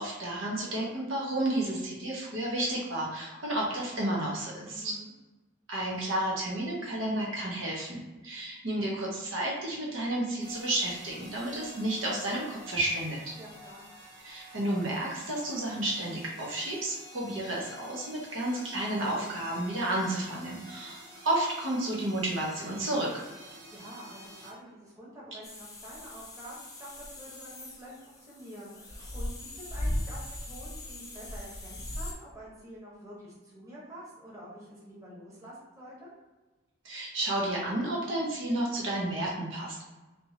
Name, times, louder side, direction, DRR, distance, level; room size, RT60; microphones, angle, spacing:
voice 1, 0.0-4.9 5.7-13.3 14.2-23.6 36.8-39.8, right 1 dB, 75° right, -4 dB, 1.0 m, -31 dB
voice 2, 4.6-5.1 13.4-13.9 23.7-36.1, equal, 15° right, -7 dB, 1.2 m, -47 dB
sound 1, 10.4-24.5, equal, 60° right, 1.4 m, -50 dB
sound 2, 25.4-32.1, left 1 dB, 20° left, 0.6 m, -38 dB
3.5 x 2.8 x 2.9 m, 1.2 s
head